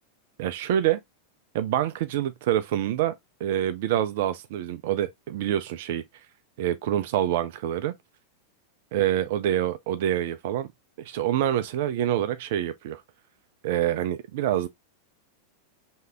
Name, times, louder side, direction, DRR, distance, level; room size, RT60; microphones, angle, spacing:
voice 1, 0.4-1.0 1.5-3.1 3.4-6.0 6.6-7.9 8.9-10.7 11.0-13.0 13.6-14.7, right 11 dB, 50° right, 0.4 m, -26 dB
3.2 x 2.7 x 3.3 m
figure-of-eight pair, 90°, 0 cm